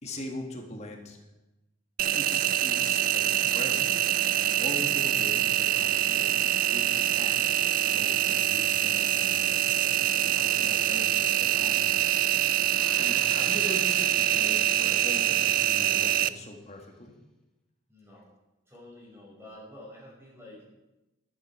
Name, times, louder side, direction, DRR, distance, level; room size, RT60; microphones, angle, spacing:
voice 1, 0.0-1.2 2.2-9.5 10.2-12.1 13.0-17.1, left 1 dB, 35° left, 2 dB, 1.8 m, -41 dB
Engine, 2.0-16.3, right 12 dB, 45° right, 0.3 m, -25 dB
sound 1, 12.7-16.1 16.5-16.6, left 1 dB, 5° left, 1.2 m, -47 dB
voice 2, 17.9-18.3 18.7-20.7, left 1 dB, 15° right, -6 dB, 5.8 m, -48 dB
12.0 x 12.0 x 4.8 m, 1.0 s
head